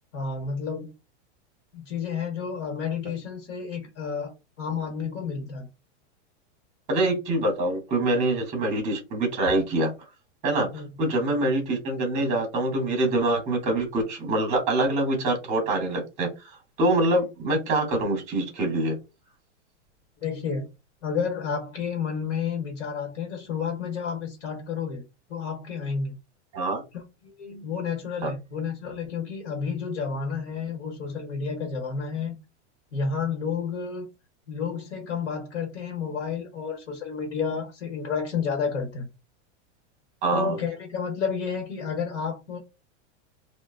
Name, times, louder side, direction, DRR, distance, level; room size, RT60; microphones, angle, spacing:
voice 1, 0.1-0.9 1.7-4.3 4.6-5.7 10.7-10.9 20.2-20.7 21.0-25.0 25.3-26.1 26.9-32.4 32.9-34.1 34.5-39.1 40.3-42.6, left 6 dB, 65° left, 1.2 m, -31 dB
voice 2, 6.9-9.9 10.4-10.7 11.0-18.9 26.5-26.8 28.2-28.3 40.2-40.6, right 2 dB, 20° right, 1.0 m, -25 dB
3.7 x 2.2 x 2.4 m
supercardioid pair, 165°, 35 cm